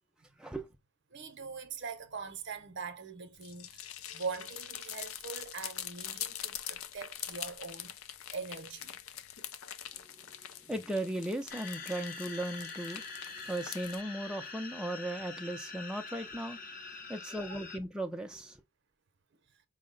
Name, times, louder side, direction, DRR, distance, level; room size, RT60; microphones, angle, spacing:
voice 1, 1.1-3.9 4.1-7.9 8.3-9.0 10.7-10.8 17.5-17.6, right 5 dB, 55° right, 0.7 m, -42 dB
sound 1, 3.3-14.0, left 10 dB, 75° left, 0.5 m, -44 dB
voice 2, 10.7-13.0 13.4-16.6 17.1-18.6, right 1 dB, 5° right, 0.4 m, -37 dB
sound 2, 11.5-17.8, left 4 dB, 40° left, 0.7 m, -44 dB
4.7 x 2.1 x 3.7 m
head